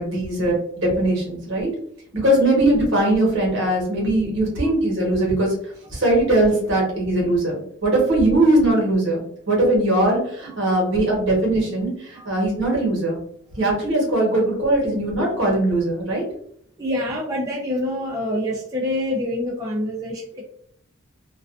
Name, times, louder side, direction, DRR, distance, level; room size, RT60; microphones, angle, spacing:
voice 1, 0.0-1.7 2.1-9.2 9.5-13.2 13.5-16.2, right 1 dB, 60° right, -2 dB, 1.0 m, -20 dB
voice 2, 16.8-20.5, left 1 dB, 15° right, -4 dB, 0.3 m, -26 dB
2.4 x 2.3 x 2.4 m, 0.65 s
head